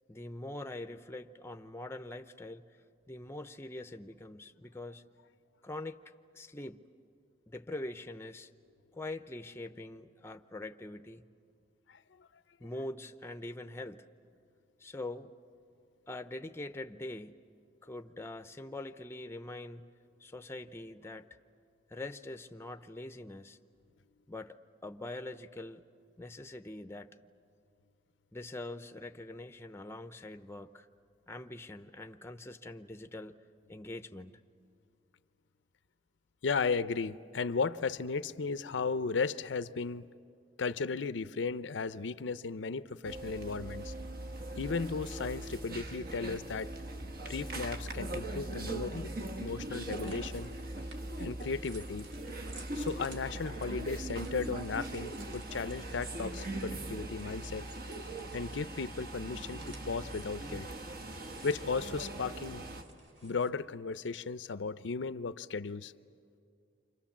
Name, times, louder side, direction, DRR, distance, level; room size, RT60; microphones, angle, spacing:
voice 1, 0.1-2.7 3.1-5.0 5.6-6.0 6.3-6.8 7.5-8.5 8.9-11.2 12.6-14.1 14.8-15.3 16.1-17.5 17.8-19.8 20.2-21.4 21.9-23.6 24.3-25.8 26.2-27.1 28.3-30.9 31.3-33.4 33.7-34.3, left 2 dB, 15° left, 8 dB, 0.6 m, -43 dB
voice 2, 36.4-40.0 40.6-43.9 44.5-46.7 47.2-49.1 49.4-50.5 51.2-52.1 52.8-57.7 58.3-60.7 61.4-62.6 63.2-65.9, left 4 dB, 75° left, 14 dB, 0.6 m, -35 dB
sound 1, 43.0-62.8, right 2 dB, 50° right, 1.3 m, -41 dB
sound 2, 49.4-63.5, right 2 dB, 75° right, 2.1 m, -57 dB
29.5 x 26.0 x 7.3 m, 2.4 s
head